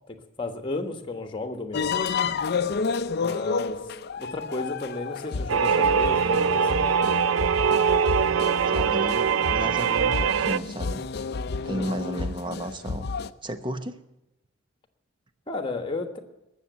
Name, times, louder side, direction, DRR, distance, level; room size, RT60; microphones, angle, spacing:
voice 1, 0.1-1.9 3.2-3.8 4.2-6.9 11.7-11.9 15.5-16.2, left 2 dB, 25° left, 6 dB, 1.4 m, -33 dB
sound 1, 1.7-13.3, left 5 dB, 55° left, 0.5 m, -31 dB
sound 2, 5.5-10.6, right 6 dB, 80° right, 0.4 m, -22 dB
voice 2, 8.7-11.0 11.6-13.1 13.4-14.0, right 1 dB, 25° right, 10 dB, 0.8 m, -33 dB
20.0 x 7.2 x 8.1 m, 0.93 s
head